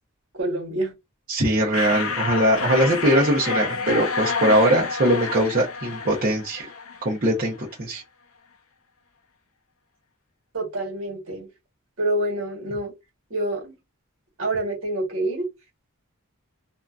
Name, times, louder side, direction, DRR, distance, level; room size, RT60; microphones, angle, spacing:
voice 1, 0.3-0.9 10.5-11.5 12.0-12.9 13.3-13.7 14.4-15.5, right 1 dB, 60° right, 1.4 m, -27 dB
voice 2, 1.3-6.7 7.0-8.0, right 1 dB, 40° right, 0.7 m, -21 dB
sound 1, 1.7-7.2, left 5 dB, 65° left, 0.5 m, -29 dB
2.7 x 2.3 x 2.4 m
head